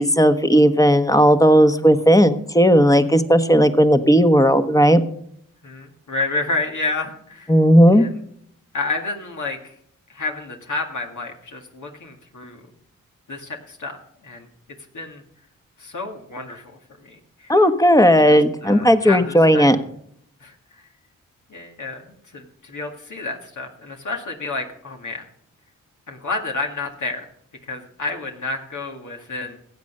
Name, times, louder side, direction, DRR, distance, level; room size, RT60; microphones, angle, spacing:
voice 1, 0.0-5.0 7.5-8.0 17.5-19.8, equal, 10° left, 9 dB, 1.2 m, -14 dB
voice 2, 5.6-7.5 7.9-8.2 8.7-9.8 10.1-12.7 13.3-14.5 14.9-15.2 15.8-17.5 18.2-19.8 20.4-20.9 21.5-25.2 26.1-27.3 27.6-29.6, left 3 dB, 60° left, 2 dB, 2.0 m, -30 dB
15.5 x 8.4 x 5.6 m, 0.70 s
cardioid pair, 45°, 33 cm